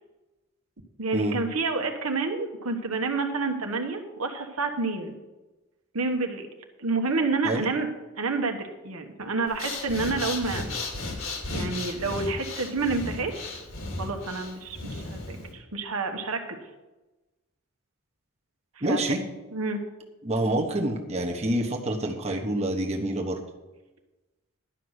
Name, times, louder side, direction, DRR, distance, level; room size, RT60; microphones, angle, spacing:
voice 1, 1.0-5.1 5.9-6.5 6.8-7.9 8.2-10.6 11.5-13.6 14.0-16.6 18.9-19.0 19.5-19.8, right 3 dB, 75° right, 4 dB, 1.3 m, -29 dB
Breathing, 9.5-15.5, left 2 dB, 65° left, 2.3 m, -34 dB
voice 2, 18.8-19.2 20.2-23.4, right 1 dB, 30° right, 1 dB, 1.2 m, -27 dB
11.5 x 5.8 x 8.0 m, 1.1 s
head